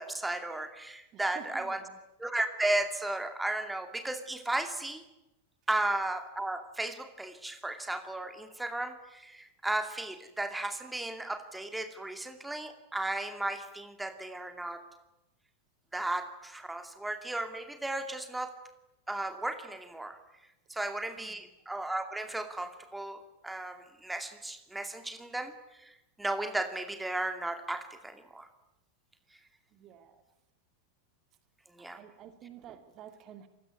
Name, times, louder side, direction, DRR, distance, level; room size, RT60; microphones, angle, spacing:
voice 1, 0.0-1.8 2.2-5.0 5.7-14.8 15.9-18.5 19.1-20.2 20.7-25.5 25.8-28.5 31.7-32.0, right 2 dB, 5° right, 9 dB, 2.4 m, -35 dB
voice 2, 1.1-2.0 21.2-21.4 29.7-30.2 31.8-33.5, right 9 dB, 35° right, 10 dB, 2.3 m, -51 dB
28.0 x 20.5 x 9.5 m, 0.94 s
figure-of-eight pair, 90°, 0 cm